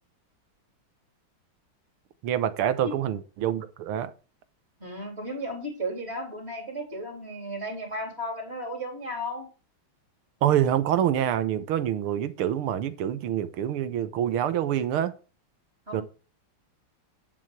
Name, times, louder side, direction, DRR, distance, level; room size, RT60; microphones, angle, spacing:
voice 1, 2.2-4.1 10.4-15.1 15.9-16.0, right 10 dB, 80° right, 1.9 m, -26 dB
voice 2, 4.8-9.5 15.9-16.0, equal, 30° right, 3.9 m, -34 dB
9.9 x 7.6 x 4.9 m
omnidirectional pair, 2.3 m